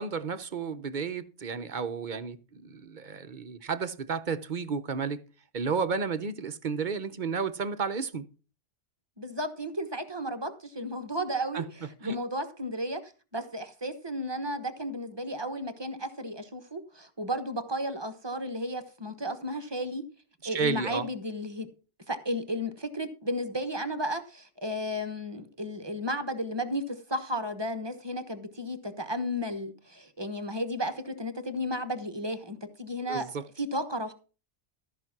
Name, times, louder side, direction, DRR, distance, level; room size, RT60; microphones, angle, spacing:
voice 1, 0.0-5.2 5.5-8.2 11.5-11.6 12.0-12.2 20.5-21.1 33.1-33.4, right 5 dB, 45° right, 0.8 m, -32 dB
voice 2, 9.2-20.0 20.4-21.7 22.1-33.3 33.6-34.1, equal, 20° right, 1.2 m, -33 dB
14.0 x 5.8 x 5.9 m
omnidirectional pair, 1.2 m